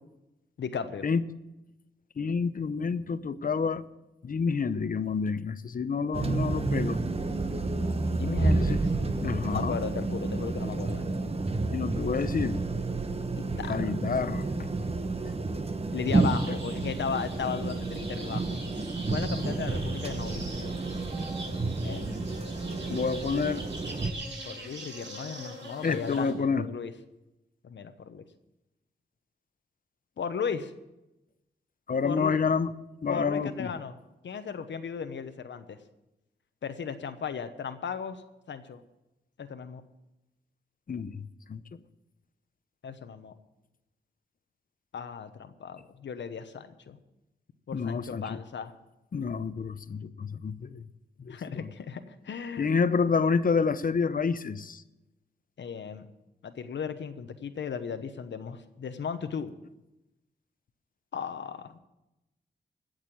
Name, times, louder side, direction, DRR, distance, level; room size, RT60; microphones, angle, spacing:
voice 1, 0.6-1.1 8.1-8.9 9.4-11.1 13.3-13.9 15.9-18.6 19.1-20.8 21.8-22.3 23.3-23.5 24.4-26.9 27.6-28.2 30.2-30.7 32.0-32.4 33.1-34.0 34.2-35.8 36.6-38.8 39.4-39.8 42.8-43.3 44.9-47.0 47.7-48.7 51.3-52.8 55.6-56.1 56.4-59.5 61.1-61.8, left 6 dB, 80° left, 9 dB, 1.0 m, -36 dB
voice 2, 2.2-3.8 4.2-7.0 8.5-8.8 9.2-9.8 11.7-12.6 13.7-14.4 16.5-16.6 22.9-23.6 25.8-26.7 31.9-32.7 33.0-33.7 40.9-41.2 41.5-41.8 47.7-48.4 49.1-50.9 51.2-51.6 52.6-54.8, left 5 dB, 50° left, 13 dB, 0.8 m, -28 dB
sound 1, 6.1-24.1, right 3 dB, 30° right, 1.2 m, -30 dB
sound 2, 16.1-26.3, right 1 dB, 85° right, 5.4 m, -43 dB
16.5 x 6.6 x 9.2 m, 0.95 s
wide cardioid pair, 90°, 19 cm